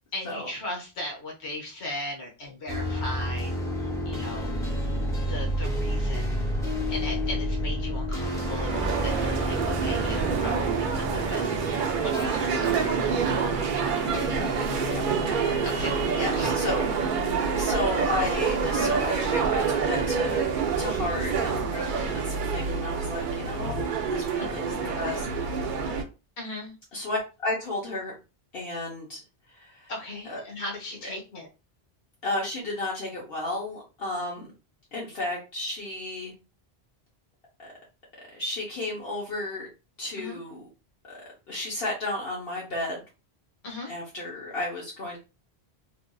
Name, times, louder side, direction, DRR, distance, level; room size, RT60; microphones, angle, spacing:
voice 1, 0.1-3.5 3.8-4.5 5.3-6.4 6.9-12.7 15.6-16.0 16.2-16.6 26.4-26.7 29.9-31.5 40.2-40.4 43.6-43.9, left 1 dB, 90° left, 0 dB, 1.2 m, -37 dB
sound 1, 2.7-17.6, equal, 5° left, 0.8 m, -31 dB
sound 2, 8.2-26.0, right 5 dB, 60° right, 0.6 m, -27 dB
voice 2, 13.8-14.1 14.8-15.1 16.2-16.9 17.6-20.4 20.8-25.5 26.9-28.1 28.5-29.2 29.5-29.9 30.3-30.4 32.2-34.5 34.9-36.3 37.6-37.7 38.3-39.7 40.0-40.7 41.1-41.2 41.5-43.0 43.9-45.2, left 2 dB, 65° left, -4 dB, 1.1 m, -33 dB
3.4 x 2.5 x 2.2 m, 0.30 s
omnidirectional pair, 1.1 m